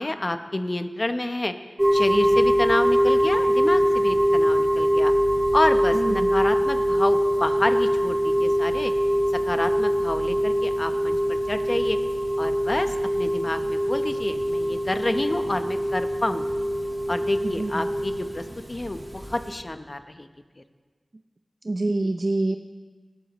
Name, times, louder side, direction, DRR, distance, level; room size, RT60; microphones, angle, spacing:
voice 1, 0.0-1.5 1.9-5.1 5.5-8.9 9.5-12.0 12.4-16.6 17.1-20.3, left 2 dB, 45° left, 8 dB, 0.9 m, -29 dB
sound 1, 1.8-19.5, equal, 20° right, 1.7 m, -23 dB
voice 2, 5.9-6.3 17.4-17.7 21.7-22.6, right 2 dB, 60° right, 5 dB, 0.5 m, -25 dB
20.0 x 12.5 x 3.1 m, 1.4 s
wide cardioid pair, 40°, 0 cm